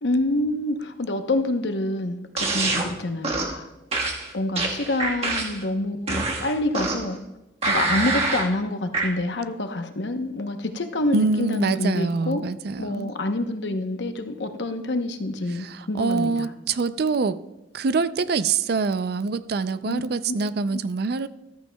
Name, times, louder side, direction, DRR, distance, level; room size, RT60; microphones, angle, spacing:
voice 1, 0.0-3.7 4.3-7.2 7.6-12.4 12.8-16.5 19.9-20.0 20.3-20.8, left 2 dB, 75° left, 7 dB, 0.9 m, -27 dB
sound 1, 2.4-2.9 3.2-3.6 3.9-5.6 6.1-7.1 7.6-8.5 8.9-9.1, right 3 dB, 35° right, 1.4 m, -25 dB
voice 2, 11.1-13.1 15.5-17.4 17.7-21.3, right 4 dB, 60° right, 14 dB, 0.4 m, -25 dB
14.5 x 13.5 x 2.3 m, 0.98 s
head